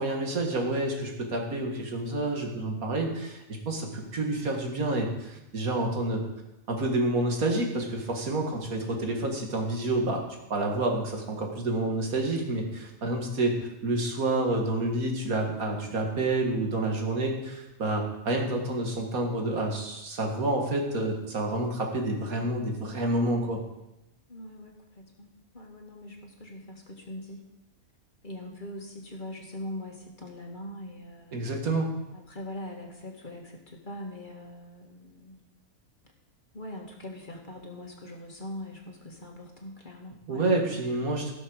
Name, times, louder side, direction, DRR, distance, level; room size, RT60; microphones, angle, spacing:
voice 1, 0.0-6.2 6.7-10.2 10.5-13.6 13.8-23.6 31.3-31.9 40.3-41.3, right 2 dB, 80° right, 2 dB, 2.3 m, -28 dB
voice 2, 24.3-25.3 25.5-27.5 28.2-31.4 32.1-35.4 36.5-40.4, left 1 dB, 35° left, 1 dB, 1.8 m, -42 dB
16.0 x 6.3 x 6.4 m, 0.94 s
omnidirectional pair, 1.5 m